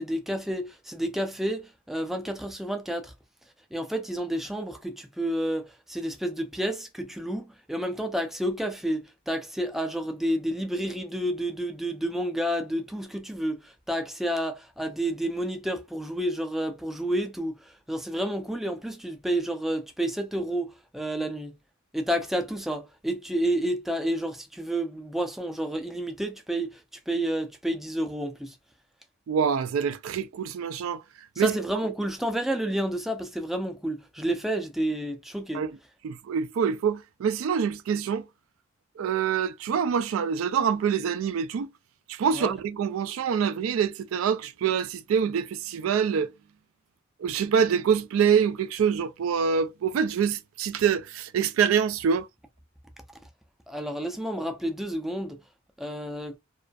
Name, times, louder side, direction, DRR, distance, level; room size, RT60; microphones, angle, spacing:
voice 1, 0.0-3.1 3.7-21.6 21.9-26.8 27.1-28.6 31.4-35.6 42.3-42.5 53.7-55.4 55.8-56.4, right 1 dB, ahead, 0.3 m, -30 dB
voice 2, 29.3-31.0 31.4-31.5 35.5-35.7 36.0-38.3 39.0-41.7 42.1-46.3 47.2-52.3, right 7 dB, 80° right, 0.3 m, -25 dB
2.4 x 2.3 x 2.3 m
head